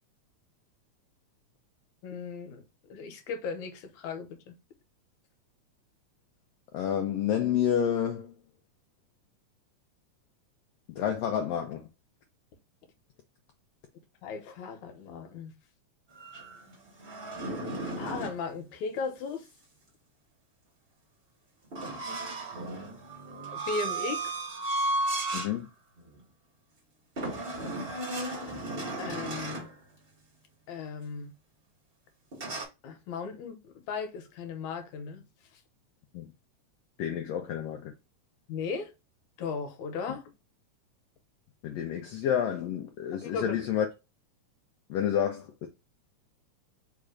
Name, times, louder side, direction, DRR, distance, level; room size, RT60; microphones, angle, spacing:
voice 1, 2.0-2.6 2.9-4.6 14.2-15.5 18.0-19.5 23.5-24.4 29.0-29.7 30.7-31.3 32.8-35.2 38.5-38.9 39.4-40.2 43.2-43.6, left 5 dB, 75° left, 2.1 m, -36 dB
voice 2, 6.7-8.3 11.0-11.9 25.3-25.7 36.1-36.3 37.0-37.9 41.6-43.8 44.9-45.7, left 9 dB, 90° left, 1.4 m, -29 dB
sound 1, 16.1-18.4 21.7-25.5 26.0-26.2 27.1-29.7 32.3-32.6, right 2 dB, 85° right, 0.5 m, -34 dB
4.8 x 2.2 x 4.8 m
omnidirectional pair, 3.5 m